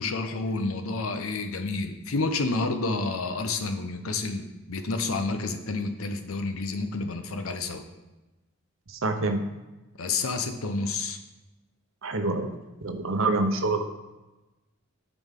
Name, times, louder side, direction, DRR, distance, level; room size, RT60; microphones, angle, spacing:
voice 1, 0.0-4.4 4.7-7.8 10.0-11.2, left 3 dB, 80° left, 7 dB, 0.8 m, -29 dB
voice 2, 8.9-9.4 12.0-12.5 12.8-13.8, right 2 dB, 70° right, 5 dB, 0.8 m, -26 dB
9.2 x 6.1 x 3.7 m, 1.1 s
head